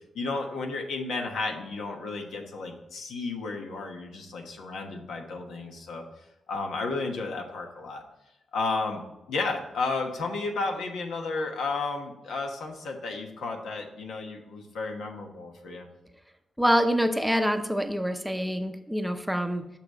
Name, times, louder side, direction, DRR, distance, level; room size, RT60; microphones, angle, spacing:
voice 1, 0.1-6.0 6.5-8.0 8.5-15.9, left 3 dB, 85° left, 2 dB, 1.3 m, -33 dB
voice 2, 16.6-19.7, equal, 5° right, 7 dB, 0.7 m, -26 dB
6.6 x 6.0 x 4.3 m, 0.93 s
cardioid pair, 75°, 0 cm